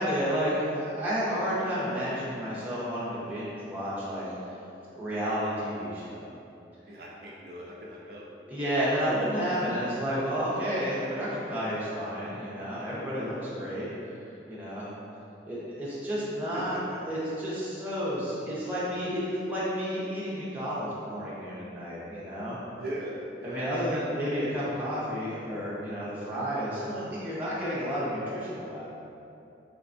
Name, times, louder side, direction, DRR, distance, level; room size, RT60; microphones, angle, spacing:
voice 1, 0.0-4.2 4.9-6.3 8.5-13.9 14.5-14.9 15.4-22.6 23.4-28.8, equal, 10° right, -9 dB, 0.6 m, -31 dB
voice 2, 6.9-8.2 16.5-16.8 22.8-23.6, right 1 dB, 65° right, -4 dB, 0.4 m, -39 dB
4.5 x 2.2 x 2.5 m, 2.7 s
head